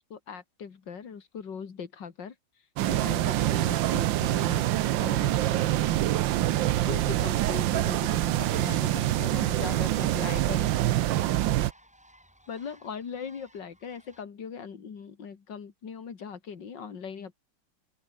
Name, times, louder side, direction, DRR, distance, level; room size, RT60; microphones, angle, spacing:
voice 1, 0.1-2.3 2.9-5.6 6.9-10.7 12.5-17.3, left 6 dB, 70° left, 2.8 m, -40 dB
sound 1, 2.8-11.7, right 14 dB, 80° right, 1.5 m, -25 dB
sound 2, 5.0-14.2, equal, 5° right, 3.9 m, -58 dB
open air
omnidirectional pair, 2.0 m